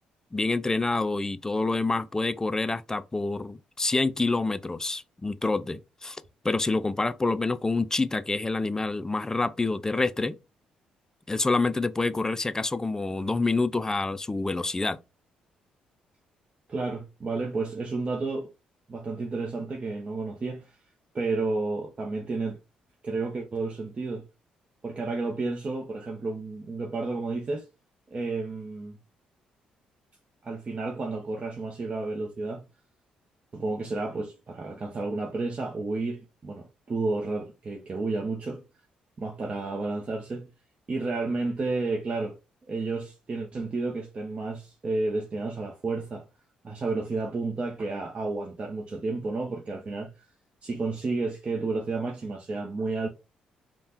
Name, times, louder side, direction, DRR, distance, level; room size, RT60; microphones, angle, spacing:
voice 1, 0.3-6.2 6.4-10.4 11.3-15.0, left 3 dB, 20° left, 0.3 m, -27 dB
voice 2, 16.7-18.5 18.9-20.8 21.1-22.6 23.0-24.2 24.8-27.6 28.1-29.0 30.4-32.6 33.5-38.6 39.2-40.5 40.9-42.3 42.7-46.2 46.6-50.1 50.6-53.1, right 3 dB, 40° right, 0.6 m, -31 dB
3.2 x 2.2 x 2.8 m
supercardioid pair, 55°, 3 cm